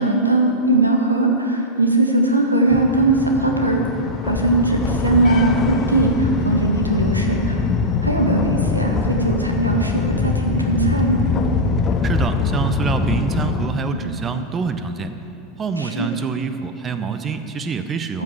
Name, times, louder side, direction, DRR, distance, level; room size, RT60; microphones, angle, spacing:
voice 1, 0.0-3.8 4.2-7.6 8.0-11.2 15.8-16.1 18.1-18.2, right 2 dB, 85° right, 2 dB, 1.0 m, -19 dB
sound 1, 2.7-13.7, left 5 dB, 30° left, 0.8 m, -23 dB
voice 2, 12.0-15.1 15.6-18.2, right 5 dB, 25° right, 9 dB, 0.7 m, -26 dB
13.5 x 5.9 x 7.2 m, 2.8 s
figure-of-eight pair, 85°, 0 cm